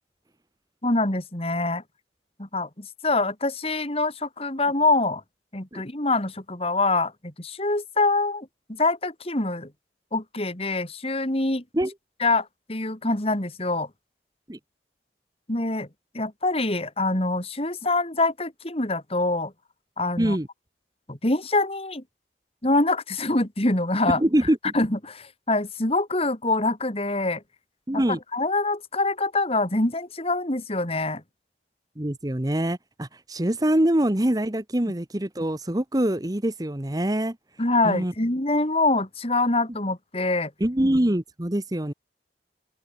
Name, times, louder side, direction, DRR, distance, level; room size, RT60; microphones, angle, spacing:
voice 1, 0.8-1.8 2.4-5.2 5.5-9.7 10.1-11.6 12.2-13.9 15.5-15.9 16.1-19.5 20.0-20.4 21.1-22.0 22.6-24.2 24.7-27.4 27.9-28.0 28.3-31.2 37.6-40.5, left 2 dB, 35° left, 2.6 m, -25 dB
voice 2, 24.1-24.7 27.9-28.2 32.0-37.4 37.8-38.1 40.6-41.9, right 1 dB, 20° right, 1.2 m, -24 dB
open air
head